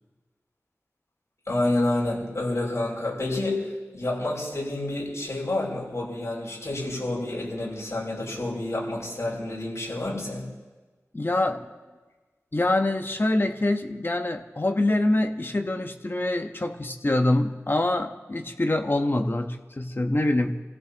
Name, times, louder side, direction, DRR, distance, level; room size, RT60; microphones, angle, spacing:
voice 1, 1.5-10.5, left 2 dB, 60° left, -4 dB, 6.6 m, -29 dB
voice 2, 11.1-11.6 12.5-20.6, left 1 dB, 40° left, 5 dB, 1.1 m, -25 dB
29.0 x 16.0 x 3.0 m, 1.3 s
wide cardioid pair, 70°, 5 cm